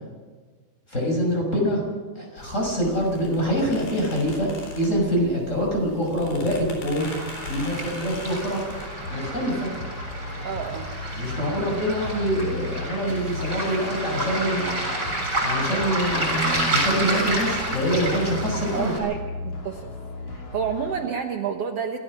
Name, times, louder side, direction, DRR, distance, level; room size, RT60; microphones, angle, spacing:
voice 1, 0.9-1.8 2.1-4.5 4.7-7.1 7.5-8.6 9.1-9.7 11.1-14.8 15.4-18.9, equal, 20° left, 0 dB, 6.2 m, -25 dB
sound 1, 2.4-8.9, left 3 dB, 75° left, 5.9 m, -40 dB
Waves surf, 7.0-19.0, right 1 dB, 25° right, 7.3 m, -29 dB
sound 2, 9.0-21.0, left 3 dB, 50° left, 4.4 m, -36 dB
voice 2, 10.4-10.9 18.7-19.2 19.6-19.9 20.3-22.0, right 7 dB, 75° right, 4 dB, 1.4 m, -29 dB
27.5 x 17.0 x 6.3 m, 1.5 s
omnidirectional pair, 4.4 m